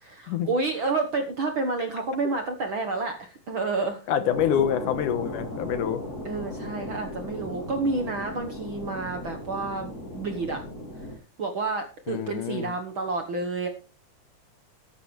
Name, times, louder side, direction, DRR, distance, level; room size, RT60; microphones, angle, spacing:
voice 1, 0.1-4.1 6.2-10.6 11.4-13.7, right 3 dB, 55° right, 1.4 m, -29 dB
voice 2, 4.1-6.0 12.1-12.7, left 9 dB, 75° left, 2.5 m, -26 dB
sound 1, 4.3-11.2, left 1 dB, 30° left, 3.7 m, -37 dB
14.0 x 11.5 x 3.2 m
omnidirectional pair, 3.8 m